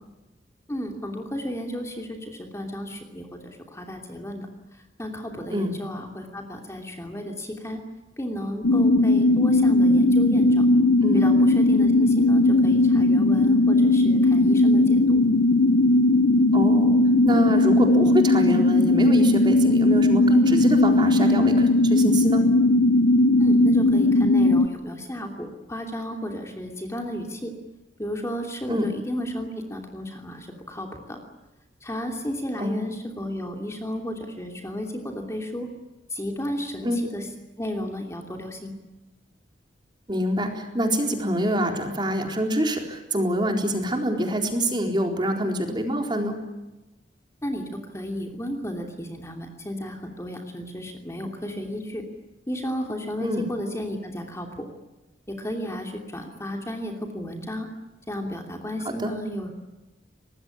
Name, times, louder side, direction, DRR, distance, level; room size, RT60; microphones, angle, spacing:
voice 1, 0.7-7.8 8.2-10.7 11.1-15.2 23.4-27.5 28.0-31.2 31.8-35.7 36.1-37.3 37.6-38.7 47.4-52.0 52.5-54.7 55.3-57.7 58.1-59.5, equal, 15° left, 3 dB, 2.9 m, -33 dB
sound 1, 8.6-24.7, left 2 dB, 75° left, 0.8 m, -18 dB
voice 2, 16.5-17.0 17.2-22.4 28.7-28.9 32.6-32.9 36.8-37.0 40.1-46.4 53.2-53.5 58.8-59.1, equal, 25° right, 3 dB, 4.1 m, -26 dB
24.5 x 20.5 x 10.0 m, 1.0 s
head